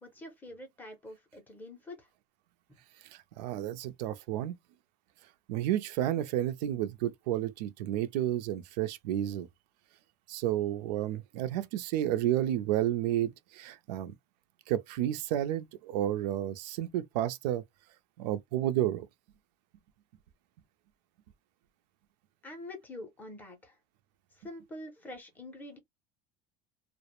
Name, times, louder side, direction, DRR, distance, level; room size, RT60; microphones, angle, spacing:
voice 1, 0.0-2.1 22.4-23.8 24.3-25.8, left 1 dB, 10° left, 0.5 m, -46 dB
voice 2, 3.1-4.5 5.5-9.5 10.3-14.1 14.7-17.6 18.2-19.1, right 12 dB, 90° right, 0.4 m, -31 dB
2.3 x 2.0 x 2.9 m
cardioid pair, 180°, 21 cm